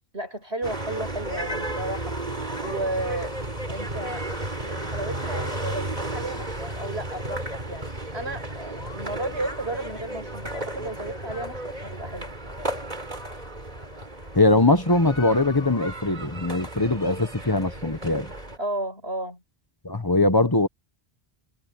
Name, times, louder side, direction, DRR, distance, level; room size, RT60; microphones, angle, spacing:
voice 1, 0.1-2.3 2.6-3.3 3.7-4.3 4.7-12.3 18.6-19.4, right 1 dB, 75° right, 7.0 m, -33 dB
sound 1, 0.6-18.6, right 1 dB, 40° right, 3.9 m, -33 dB
voice 2, 14.3-18.3 19.8-20.7, left 2 dB, 20° left, 1.2 m, -21 dB
omnidirectional pair, 1.1 m